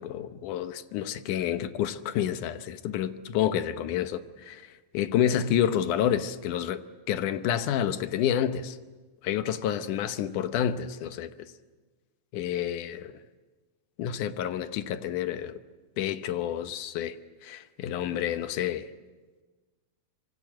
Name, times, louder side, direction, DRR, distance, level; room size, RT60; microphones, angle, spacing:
voice 1, 0.0-4.6 4.9-8.8 9.2-11.3 12.3-13.1 14.0-15.6 16.0-17.2 17.4-18.9, left 10 dB, 85° left, 2.5 m, -29 dB
25.0 x 24.5 x 7.6 m
omnidirectional pair, 3.5 m